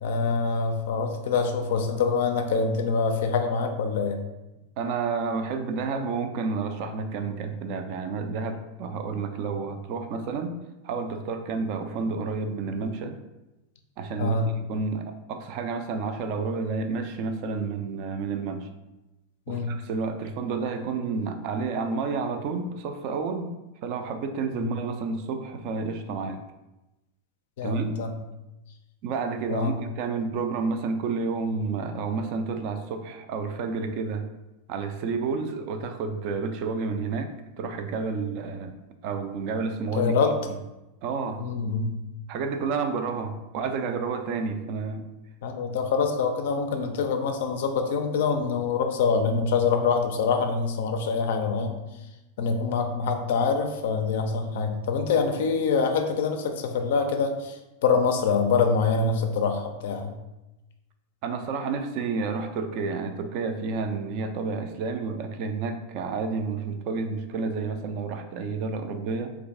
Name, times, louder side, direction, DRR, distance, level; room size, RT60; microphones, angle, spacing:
voice 1, 0.0-4.2 14.2-14.4 19.5-19.8 24.6-24.7 27.6-28.2 29.5-29.7 39.9-40.4 41.4-42.0 45.4-51.8 52.4-60.2, left 5 dB, 55° left, 5 dB, 0.4 m, -25 dB
voice 2, 4.8-10.5 10.8-13.2 14.0-18.7 19.5-23.5 23.8-26.4 27.6-28.0 29.0-34.2 34.7-38.8 39.0-40.2 41.0-41.5 42.3-45.1 61.2-69.4, right 4 dB, 45° right, 7 dB, 0.4 m, -30 dB
3.1 x 2.4 x 3.5 m, 1.0 s
figure-of-eight pair, 90°, 0 cm